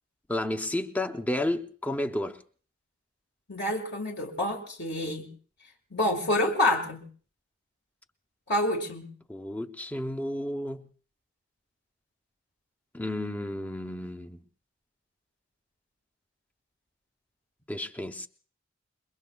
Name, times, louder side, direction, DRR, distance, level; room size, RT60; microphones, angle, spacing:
voice 1, 0.3-2.4 9.3-10.9 12.9-14.4 17.7-18.3, left 1 dB, 10° left, 0.7 m, -32 dB
voice 2, 3.5-5.3 5.9-7.0 8.5-9.1, left 1 dB, 50° left, 1.7 m, -27 dB
28.5 x 22.0 x 2.3 m
head